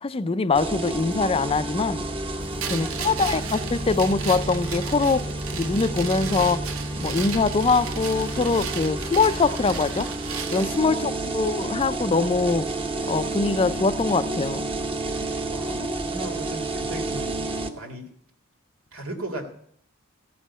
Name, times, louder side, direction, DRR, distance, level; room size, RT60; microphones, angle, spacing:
voice 1, 0.0-2.1 2.7-5.3 5.5-6.6 7.0-10.1 10.5-12.7 13.1-14.7, left 4 dB, 25° left, 0.4 m, -23 dB
sound 1, 0.5-17.7, right 2 dB, 25° right, 0.9 m, -30 dB
sound 2, 2.6-10.8, right 7 dB, 75° right, 0.8 m, -35 dB
voice 2, 2.7-3.2 10.8-11.1 15.5-17.4 17.7-18.1 18.9-19.5, right 1 dB, 90° right, 2.1 m, -37 dB
15.0 x 5.5 x 8.3 m
head